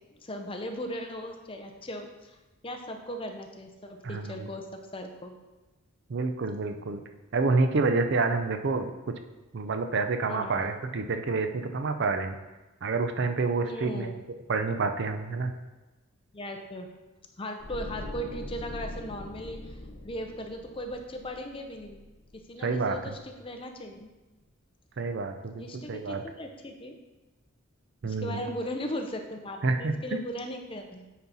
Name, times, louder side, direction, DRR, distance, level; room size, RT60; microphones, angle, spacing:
voice 1, 0.2-2.4 2.6-5.3 10.3-10.6 13.6-14.1 16.3-16.9 17.4-19.8 20.0-22.0 22.3-24.1 25.6-27.0 28.0-31.0, equal, 25° left, 4 dB, 0.6 m, -38 dB
voice 2, 4.0-4.5 6.1-7.0 7.3-8.9 9.5-12.4 12.8-14.1 14.5-15.5 22.6-23.1 25.0-26.2 28.0-28.4 29.6-30.2, right 3 dB, 55° right, 7 dB, 0.5 m, -28 dB
sound 1, 17.6-22.7 23.0-23.2, left 1 dB, 85° left, 0.9 m, -42 dB
9.2 x 4.3 x 4.1 m, 1.1 s
head